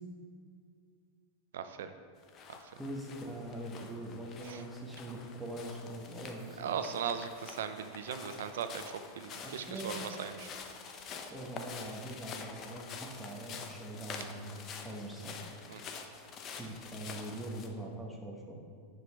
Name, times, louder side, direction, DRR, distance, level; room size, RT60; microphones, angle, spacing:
voice 1, 1.5-1.9 4.4-4.6 6.6-8.8 9.2-10.5 15.7-15.8, right 7 dB, 90° right, 9 dB, 0.4 m, -38 dB
sound 1, 2.2-17.7, left 5 dB, 30° left, 0.6 m, -47 dB
voice 2, 2.8-6.7 9.4-10.0 11.3-15.4 16.5-18.6, right 1 dB, ahead, -3 dB, 1.1 m, -43 dB
9.8 x 4.8 x 3.4 m, 2.1 s
supercardioid pair, 145°, 0 cm